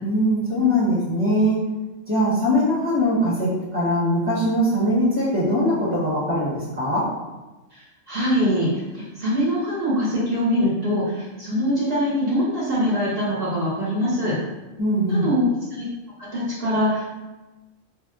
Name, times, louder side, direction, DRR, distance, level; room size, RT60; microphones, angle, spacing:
voice 1, 0.0-1.6 2.1-7.1 14.8-15.3, equal, 10° right, -8 dB, 0.9 m, -21 dB
voice 2, 7.7-8.7 8.9-14.4 15.1-15.8 16.2-17.0, equal, 50° right, -9 dB, 0.9 m, -23 dB
2.7 x 2.0 x 3.7 m, 1.1 s
omnidirectional pair, 1.4 m